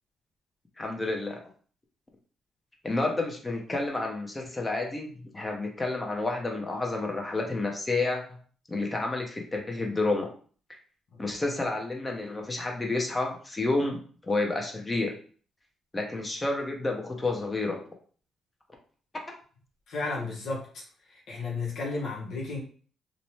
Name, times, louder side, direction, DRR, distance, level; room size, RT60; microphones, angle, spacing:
voice 1, 0.8-1.4 2.8-8.2 8.7-10.3 11.2-15.1 15.9-17.8, left 2 dB, 20° left, 1 dB, 0.7 m, -30 dB
voice 2, 19.9-20.6 21.1-22.6, left 3 dB, 70° left, -3 dB, 0.8 m, -33 dB
2.6 x 2.1 x 3.0 m, 0.44 s
cardioid pair, 90°, 0 cm